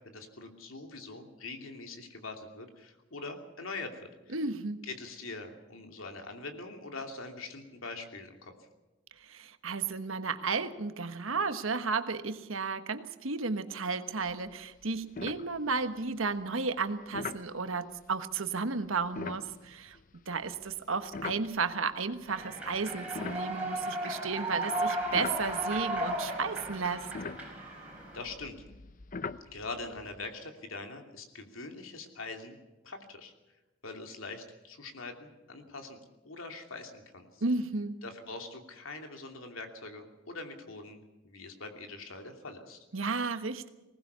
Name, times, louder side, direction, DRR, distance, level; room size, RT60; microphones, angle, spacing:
voice 1, 0.0-4.4 4.8-8.5 28.1-28.6 29.5-32.6 32.8-33.3 33.8-37.4 38.0-42.9, left 3 dB, 90° left, 4 dB, 2.8 m, -43 dB
voice 2, 4.3-4.8 9.2-20.0 20.3-27.1 37.4-38.0 42.9-43.7, right 4 dB, 85° right, 9 dB, 1.3 m, -33 dB
sound 1, 14.3-14.5 14.8-14.9 15.2-16.0 17.1-17.5 19.0-21.9 22.5-24.3 24.8-30.3, left 4 dB, 40° left, 0.6 m, -42 dB
Human voice / Clapping / Cheering, 22.3-28.3, right 1 dB, 5° right, 4.9 m, -35 dB
20.5 x 18.5 x 6.8 m, 1.1 s
head